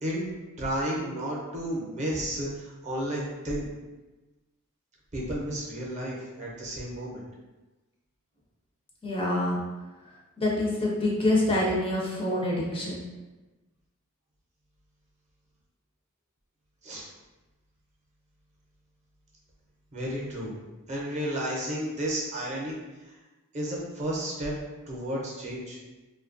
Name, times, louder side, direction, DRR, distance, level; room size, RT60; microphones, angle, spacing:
voice 1, 0.0-3.7 5.1-7.2 16.8-17.1 19.9-20.5 20.9-22.8 23.5-24.5 24.9-25.8, right 1 dB, 30° right, -4 dB, 0.6 m, -32 dB
voice 2, 9.0-9.6 10.4-13.0, left 1 dB, 25° left, -3 dB, 0.4 m, -26 dB
2.6 x 2.2 x 2.5 m, 1.1 s
head